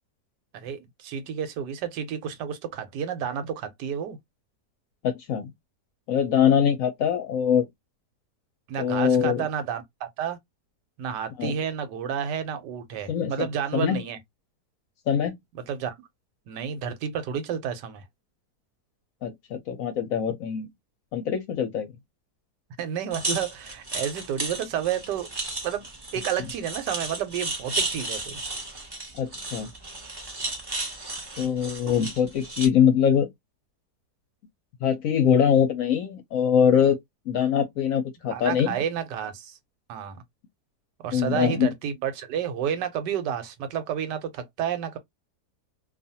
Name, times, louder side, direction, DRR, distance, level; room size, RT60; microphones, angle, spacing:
voice 1, 0.5-4.2 8.7-10.4 11.0-14.2 15.7-16.0 16.5-18.0 22.8-25.3 25.6-25.9 26.1-28.4 38.3-39.6 39.9-40.2 41.0-45.0, right 8 dB, 90° right, 1.3 m, -30 dB
voice 2, 5.0-5.5 6.1-7.7 8.8-9.5 11.4-11.5 13.1-13.5 13.7-14.0 15.1-15.4 19.2-20.7 21.1-21.9 29.1-29.7 31.4-33.3 34.8-37.0 37.3-38.7 41.1-41.7, left 8 dB, 65° left, 0.9 m, -23 dB
sound 1, 23.1-32.7, right 2 dB, 30° right, 0.5 m, -34 dB
2.6 x 2.4 x 2.7 m
omnidirectional pair, 1.8 m